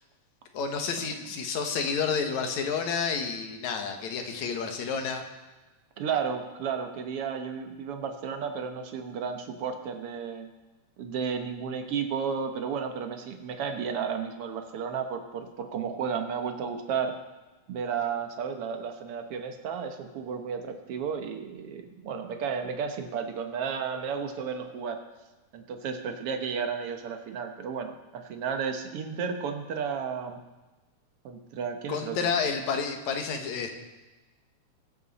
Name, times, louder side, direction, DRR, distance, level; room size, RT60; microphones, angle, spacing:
voice 1, 0.5-5.2 31.9-33.7, left 5 dB, 75° left, 4 dB, 2.5 m, -30 dB
voice 2, 6.0-10.5 11.0-17.2 17.7-25.0 25.5-30.4 31.2-32.3, right 6 dB, 60° right, 5 dB, 1.8 m, -33 dB
21.5 x 8.2 x 4.2 m, 1.2 s
omnidirectional pair, 3.4 m